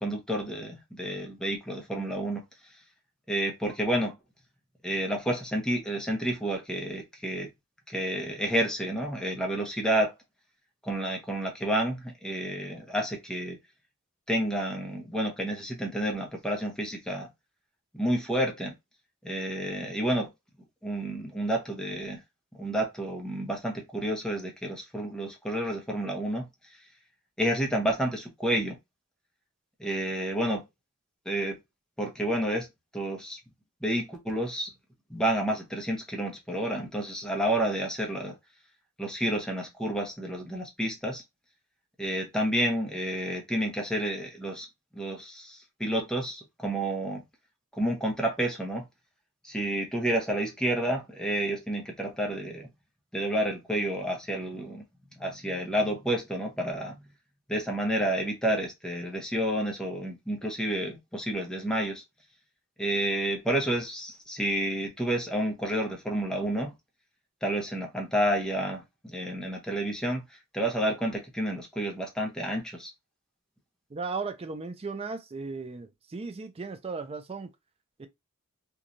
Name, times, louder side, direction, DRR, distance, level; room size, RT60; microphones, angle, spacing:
voice 1, 0.0-2.4 3.3-4.1 4.8-7.5 7.9-10.1 10.8-13.6 14.3-17.3 17.9-18.7 19.2-20.3 20.8-22.2 22.6-26.5 27.4-28.8 29.8-30.6 31.3-31.6 32.0-32.7 32.9-33.4 33.8-34.7 35.1-38.4 39.0-41.2 42.0-44.7 44.9-47.2 47.8-48.9 49.4-52.7 53.1-54.8 55.2-57.0 57.5-62.0 62.8-66.7 67.4-70.2 70.5-72.9, right 1 dB, 5° left, 0.7 m, -30 dB
voice 2, 73.9-77.5 78.0-78.1, right 4 dB, 30° right, 0.4 m, -36 dB
3.0 x 2.3 x 2.5 m
head